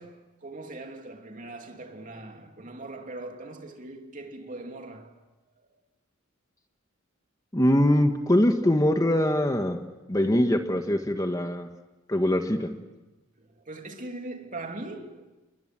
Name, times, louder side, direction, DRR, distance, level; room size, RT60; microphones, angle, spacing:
voice 1, 0.0-5.2 5.6-5.7 13.4-15.3, right 2 dB, 40° right, 3.0 m, -41 dB
voice 2, 7.5-9.8 10.1-11.7 12.1-12.7, left 1 dB, 15° left, 1.5 m, -23 dB
29.5 x 22.5 x 7.6 m
head